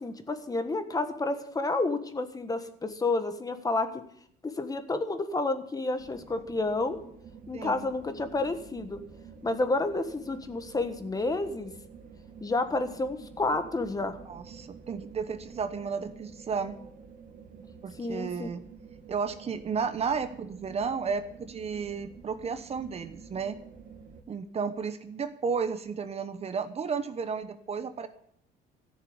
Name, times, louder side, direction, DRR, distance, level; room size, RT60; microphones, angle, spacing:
voice 1, 0.0-3.9 4.4-7.0 7.5-9.0 9.4-11.7 12.4-14.2 18.0-18.5, left 2 dB, 20° left, 9 dB, 1.4 m, -30 dB
sound 1, 6.0-24.2, right 6 dB, 55° right, 2.3 m, -49 dB
voice 2, 7.5-7.9 14.3-16.8 17.8-18.6 19.1-23.6 24.3-28.1, right 5 dB, 40° right, 11 dB, 1.1 m, -33 dB
14.0 x 7.1 x 9.7 m, 0.68 s
cardioid pair, 110°, 17 cm